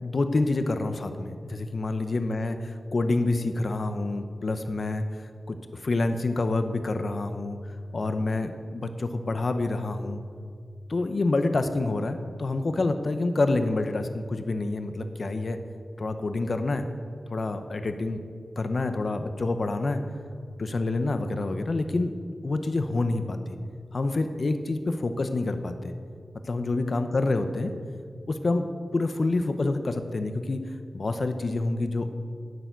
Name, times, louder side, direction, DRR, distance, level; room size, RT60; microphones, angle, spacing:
voice 1, 0.0-5.0 5.5-7.6 7.9-10.2 10.9-15.6 16.0-16.9 17.3-18.2 18.6-20.0 20.6-22.1 22.4-23.6 23.9-25.9 26.4-27.7 28.3-30.6 30.9-32.1, left 2 dB, 50° left, 8 dB, 0.8 m, -27 dB
10.5 x 7.0 x 9.1 m, 2.1 s
wide cardioid pair, 125°, 0 cm